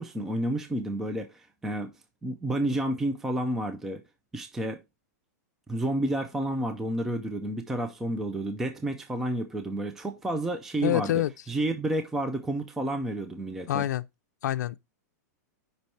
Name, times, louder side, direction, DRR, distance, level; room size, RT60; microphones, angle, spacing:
voice 1, 0.0-1.9 2.2-4.0 4.3-4.8 5.7-11.2 11.5-13.9, right 1 dB, 5° right, 0.3 m, -30 dB
voice 2, 10.8-11.3 13.7-14.0 14.4-14.8, left 12 dB, 80° left, 0.4 m, -26 dB
5.3 x 4.5 x 4.1 m
supercardioid pair, 170°, 9 cm